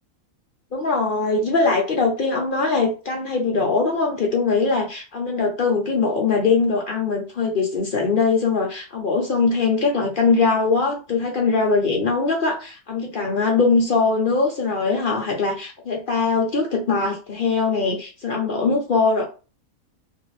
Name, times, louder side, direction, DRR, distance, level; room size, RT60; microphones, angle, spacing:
voice 1, 0.7-19.2, left 4 dB, 60° left, 0 dB, 0.5 m, -21 dB
2.5 x 2.4 x 3.0 m, 0.33 s
omnidirectional pair, 1.5 m